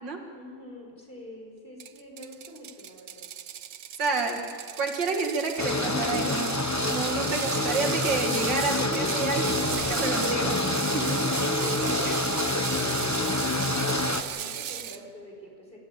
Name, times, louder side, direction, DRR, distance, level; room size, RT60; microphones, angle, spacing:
voice 1, 0.3-3.3 6.9-7.3 10.8-12.3 12.5-15.8, equal, 30° left, 0 dB, 5.0 m, -45 dB
Ratchet pawl, 1.8-15.0, right 9 dB, 60° right, 0.8 m, -36 dB
voice 2, 4.0-4.4 4.8-6.5 6.9-9.5 9.8-10.6 11.1-11.2 12.0-12.2, right 3 dB, 85° right, 2 dB, 2.7 m, -29 dB
sound 1, 5.6-14.2, left 2 dB, 15° left, 0.8 m, -27 dB
28.0 x 14.0 x 8.7 m, 2.3 s
omnidirectional pair, 1.9 m